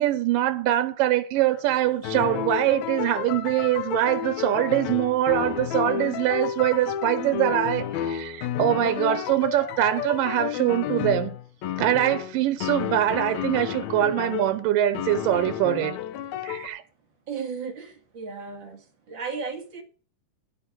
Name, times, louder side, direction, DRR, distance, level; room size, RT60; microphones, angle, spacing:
voice 1, 0.0-11.4 11.8-16.0 16.4-16.8, right 13 dB, 85° right, 2.6 m, -23 dB
sound 1, 1.4-14.6 14.9-16.7, left 10 dB, 70° left, 1.8 m, -31 dB
voice 2, 17.3-19.8, right 5 dB, 40° right, 2.3 m, -35 dB
11.0 x 7.8 x 6.3 m
omnidirectional pair, 3.9 m